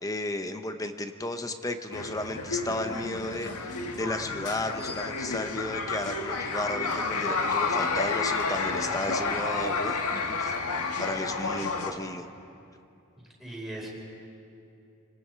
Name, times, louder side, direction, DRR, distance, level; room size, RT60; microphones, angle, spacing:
voice 1, 0.0-10.5 11.0-12.3, left 2 dB, 15° left, 8 dB, 0.9 m, -34 dB
sound 1, 1.9-11.9, left 4 dB, 85° left, 1.7 m, -30 dB
voice 2, 8.8-9.1 13.4-13.9, right 1 dB, ahead, -4 dB, 5.0 m, -39 dB
29.5 x 19.5 x 4.7 m, 2.7 s
head